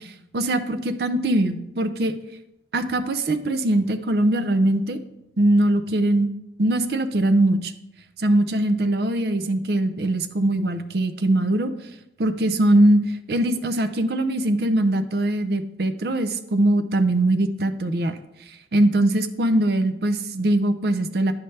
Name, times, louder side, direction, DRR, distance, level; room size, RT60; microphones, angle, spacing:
voice 1, 0.0-2.1 2.7-5.0 5.4-6.3 6.6-7.7 8.2-11.7 12.2-18.2 18.7-21.3, right 1 dB, 60° right, 9 dB, 0.5 m, -21 dB
9.5 x 5.5 x 3.3 m, 0.87 s
head